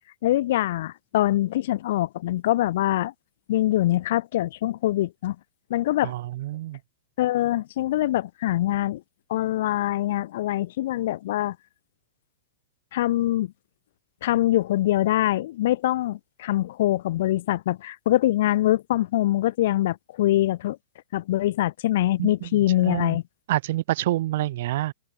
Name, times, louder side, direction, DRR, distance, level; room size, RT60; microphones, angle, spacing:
voice 1, 0.2-3.1 3.5-5.4 5.7-6.1 7.2-9.0 9.3-11.6 12.9-13.5 14.2-20.8 21.1-23.2, left 14 dB, 50° left, 2.8 m, -24 dB
voice 2, 6.0-6.8 22.2-22.5 22.8-23.2 23.5-24.9, right 15 dB, 50° right, 0.9 m, -27 dB
open air
supercardioid pair, 170°, 0 cm